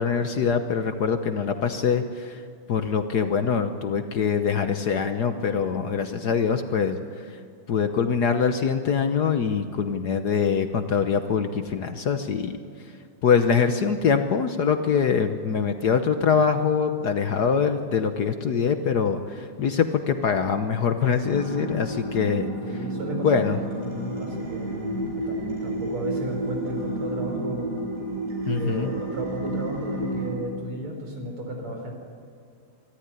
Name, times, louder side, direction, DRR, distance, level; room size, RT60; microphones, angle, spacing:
voice 1, 0.0-2.4 2.7-7.2 7.7-12.6 13.2-22.5 23.2-23.6 28.5-28.9, left 6 dB, 55° left, 8 dB, 1.3 m, -24 dB
sound 1, 21.2-30.3, right 1 dB, 45° right, 7.2 m, -31 dB
voice 2, 22.6-27.8 28.5-31.9, right 1 dB, 75° right, 3 dB, 4.8 m, -34 dB
25.5 x 13.5 x 9.8 m, 2.3 s
omnidirectional pair, 2.4 m